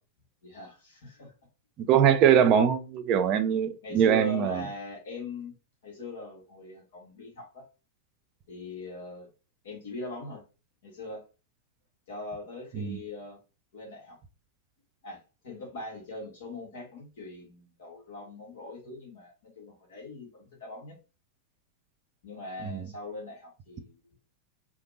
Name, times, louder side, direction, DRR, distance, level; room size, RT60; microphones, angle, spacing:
voice 1, 0.4-1.3 3.8-5.5 5.8-7.7 8.5-9.3 9.6-10.4 10.8-11.2 12.1-13.4 13.7-14.2 15.0-21.0 22.2-24.0, left 2 dB, 60° left, 1.8 m, -41 dB
voice 2, 1.8-4.6 12.8-13.0 22.6-22.9, right 9 dB, 35° right, 0.5 m, -22 dB
5.0 x 2.9 x 2.7 m
figure-of-eight pair, 90°, 0 cm